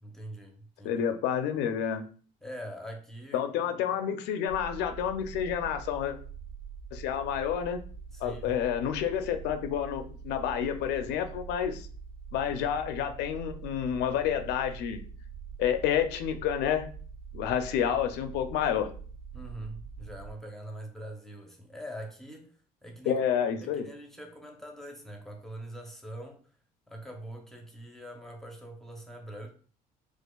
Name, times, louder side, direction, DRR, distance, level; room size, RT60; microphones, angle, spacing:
voice 1, 0.0-1.0 2.4-3.9 8.1-8.6 19.3-22.6 22.8-23.2 23.6-26.4 26.9-29.5, right 1 dB, ahead, 0.7 m, -43 dB
voice 2, 0.8-2.0 3.3-6.2 6.9-7.8 8.2-11.9 12.3-15.0 15.6-16.9 17.3-18.9 23.1-23.9, left 9 dB, 85° left, 0.5 m, -29 dB
sound 1, 4.5-20.3, right 6 dB, 65° right, 1.7 m, -44 dB
4.3 x 2.5 x 2.3 m
cardioid pair, 110°, 17 cm